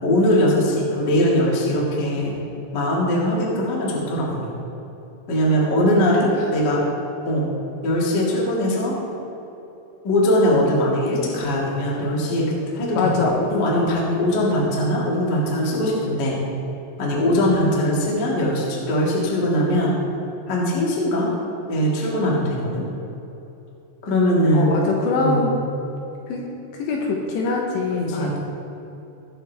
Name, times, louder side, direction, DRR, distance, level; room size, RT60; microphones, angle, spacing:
voice 1, 0.0-2.3 2.7-4.6 5.3-6.8 7.2-7.5 7.8-8.9 10.0-16.4 17.0-20.0 20.5-21.3 21.7-22.8 24.1-24.8 25.2-25.6 28.0-28.4, equal, 55° left, -4 dB, 1.1 m, -21 dB
voice 2, 13.0-13.4 24.5-25.6 26.3-28.4, left 4 dB, 75° left, -1 dB, 2.8 m, -23 dB
21.0 x 7.2 x 3.4 m, 3.0 s
omnidirectional pair, 5.8 m